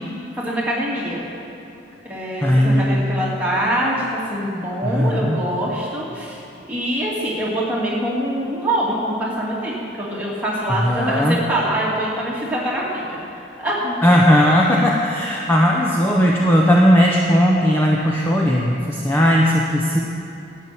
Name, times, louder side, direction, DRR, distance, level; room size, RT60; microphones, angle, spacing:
voice 1, 0.4-1.2 2.0-6.4 6.7-14.0, right 1 dB, 10° right, -7 dB, 2.5 m, -24 dB
voice 2, 2.4-3.1 4.9-5.4 10.8-11.4 14.0-20.0, equal, 10° left, -2 dB, 0.8 m, -17 dB
12.0 x 7.4 x 8.5 m, 2.8 s
head